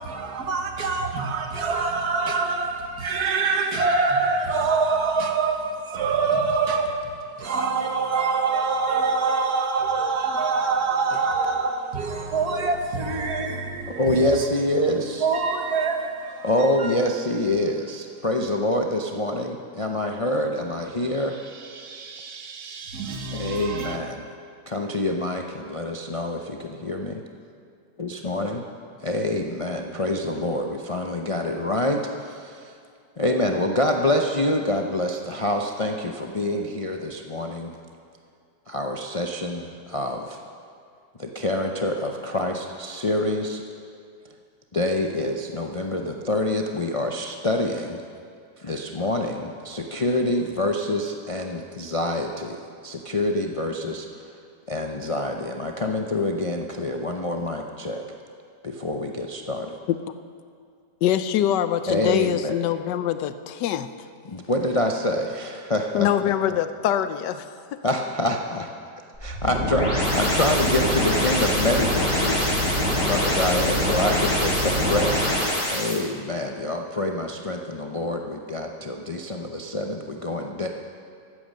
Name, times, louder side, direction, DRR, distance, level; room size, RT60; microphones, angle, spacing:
voice 1, 0.0-7.1 7.4-14.0 15.2-16.4 21.8-24.0, right 4 dB, 65° right, 1.7 m, -25 dB
voice 2, 13.9-15.3 16.4-21.4 23.3-24.3 24.7-27.2 28.0-28.6 29.0-32.7 33.2-37.8 38.7-40.4 41.2-43.6 44.7-48.0 48.6-54.4 54.7-58.0 58.6-59.8 61.9-62.5 64.2-66.3 67.8-68.7 69.2-75.4 75.7-80.7, left 1 dB, 60° left, 0.3 m, -26 dB
voice 3, 61.0-63.9 65.9-67.4 67.7-67.8, left 10 dB, 90° left, 1.3 m, -24 dB
sound 1, 69.1-75.9, equal, 30° left, 3.8 m, -24 dB
15.0 x 9.5 x 6.5 m
omnidirectional pair, 1.8 m